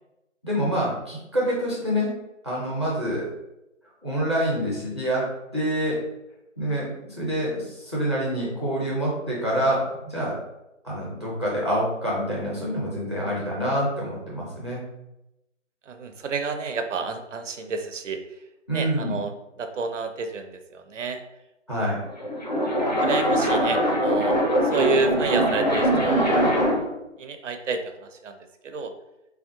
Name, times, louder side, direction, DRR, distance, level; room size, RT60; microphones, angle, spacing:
voice 1, 0.4-2.1 2.4-3.3 4.0-5.2 5.5-6.0 6.6-9.8 10.1-10.4 10.8-14.8 18.7-19.2 21.7-22.0, equal, 25° right, -6 dB, 0.5 m, -26 dB
voice 2, 15.9-18.2 18.7-19.3 19.6-21.2 21.7-22.0 23.0-26.6 27.2-28.9, right 4 dB, 70° right, 7 dB, 0.5 m, -30 dB
sound 1, 22.1-26.9, equal, 35° left, 0.4 m, -22 dB
3.5 x 2.3 x 2.6 m, 0.92 s
figure-of-eight pair, 160°, 38 cm